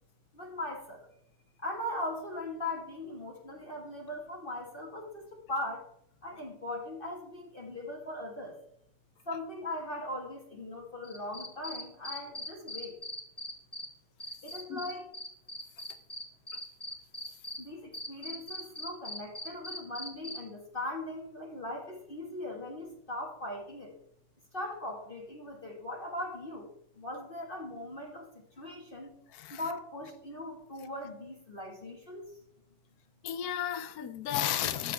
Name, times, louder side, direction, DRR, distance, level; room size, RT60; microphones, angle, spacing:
voice 1, 0.3-1.1 1.6-5.9 6.2-8.6 9.3-13.0 14.4-15.1 17.6-24.0 24.5-28.3 28.6-29.1 29.5-32.4, left 1 dB, 30° left, 1.8 m, -39 dB
Cricket, 11.0-13.9 14.2-17.6 17.9-20.4, left 1 dB, 5° left, 1.4 m, -40 dB
voice 2, 29.3-29.6 33.2-34.9, left 11 dB, 60° left, 1.2 m, -33 dB
13.5 x 7.4 x 3.4 m
omnidirectional pair, 1.9 m